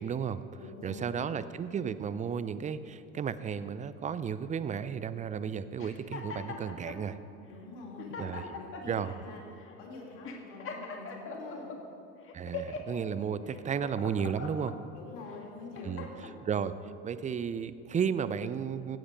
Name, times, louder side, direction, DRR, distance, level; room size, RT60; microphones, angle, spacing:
voice 1, 0.0-0.4 0.8-7.2 8.2-8.5 8.9-9.1 12.3-14.7 15.8-16.1 16.4-16.8 17.0-19.0, right 7 dB, 20° right, 14 dB, 0.5 m, -33 dB
voice 2, 0.6-1.4 7.5-9.4 9.8-11.8 13.1-13.3 14.9-16.4, left 3 dB, 65° left, -1 dB, 3.0 m, -46 dB
sound 1, 5.8-7.0 7.6-7.7 8.0-9.0 9.6-9.8 10.2-11.8 12.3-13.0 13.5-14.8 15.3-16.3, left 4 dB, 35° left, 1.7 m, -41 dB
16.5 x 7.8 x 5.3 m, 2.6 s
hypercardioid pair, 75°, 35 cm